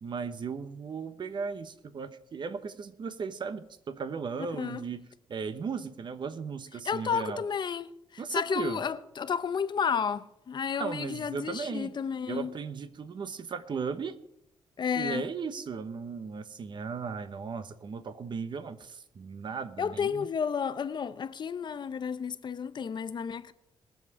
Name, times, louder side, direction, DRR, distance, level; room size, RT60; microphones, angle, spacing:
voice 1, 0.0-5.0 5.3-7.4 8.2-8.8 10.8-11.9 12.3-14.2 14.9-20.3, right 5 dB, 50° right, 1.1 m, -36 dB
voice 2, 6.8-12.5 14.8-15.3 19.8-23.5, left 6 dB, 50° left, 0.8 m, -32 dB
20.5 x 7.4 x 4.9 m
cardioid pair, 95°, 10 cm